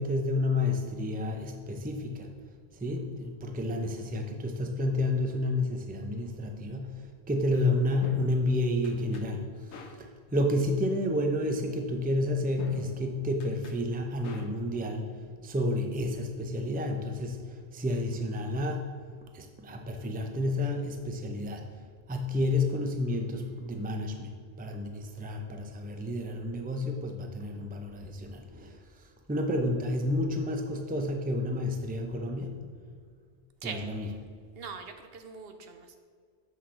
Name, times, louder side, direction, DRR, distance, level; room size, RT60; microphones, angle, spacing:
voice 1, 0.0-2.3 2.7-15.1 15.4-17.4 17.7-18.9 19.3-21.6 22.1-24.3 24.6-28.8 29.3-32.6 33.6-34.0, left 1 dB, 10° right, 4 dB, 0.5 m, -30 dB
sound 1, 7.6-15.7, left 2 dB, 85° left, 1.0 m, -47 dB
voice 2, 33.6-34.2 34.5-36.0, right 5 dB, 65° right, 6 dB, 0.8 m, -42 dB
8.3 x 5.8 x 3.7 m, 2.1 s
omnidirectional pair, 1.1 m